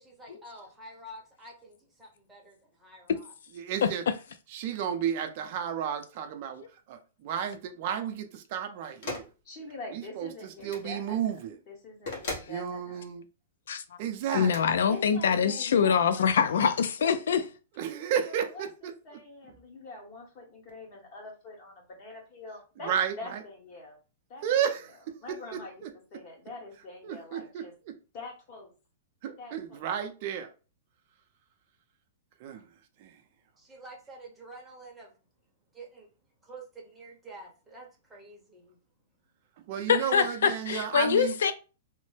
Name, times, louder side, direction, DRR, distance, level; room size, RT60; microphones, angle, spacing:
voice 1, 0.0-3.3 33.6-35.1 35.7-36.1 36.4-38.8, right 1 dB, 5° right, 0.8 m, -48 dB
voice 2, 3.6-4.0 4.5-6.6 6.9-9.3 9.9-11.6 12.5-13.2 14.0-14.5 17.8-19.2 22.9-23.4 24.4-25.2 25.5-25.9 27.0-27.9 29.2-30.5 32.4-32.6 33.0-33.1 39.7-41.3, right 9 dB, 45° right, 0.4 m, -32 dB
phone hotel pickup put down various, 9.0-9.3 10.6-10.9 12.1-12.5 14.4-14.6, left 2 dB, 55° left, 1.2 m, -37 dB
voice 3, 9.4-11.2 11.7-13.0 14.9-16.6 17.0-17.4 18.2-24.0 24.3-24.7 25.2-25.8 26.1-27.7 28.1-28.7 29.4-29.9, left 2 dB, 35° left, 1.1 m, -45 dB
voice 4, 14.3-17.4 39.9-41.5, left 7 dB, 80° left, 0.3 m, -24 dB
3.0 x 2.0 x 3.2 m
hypercardioid pair, 160°, 0 cm